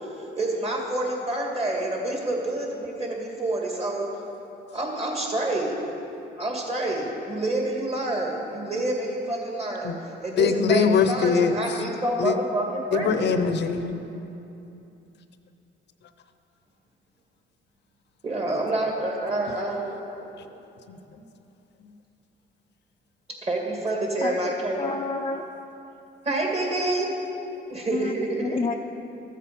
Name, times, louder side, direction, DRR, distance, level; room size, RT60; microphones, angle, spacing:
voice 1, 0.4-4.1 4.7-5.8 6.4-9.9 10.2-13.3 18.2-20.5 23.4-24.9 26.2-27.1 27.7-28.6, right 2 dB, 30° right, 0 dB, 2.3 m, -28 dB
voice 2, 10.4-11.8 12.2-12.4 12.9-14.0 20.9-21.2, left 6 dB, 60° left, 9 dB, 0.7 m, -23 dB
voice 3, 24.7-25.4 27.9-28.1 28.4-28.7, left 4 dB, 25° left, 1 dB, 0.5 m, -28 dB
13.5 x 7.6 x 5.3 m, 2.8 s
cardioid pair, 90°, 20 cm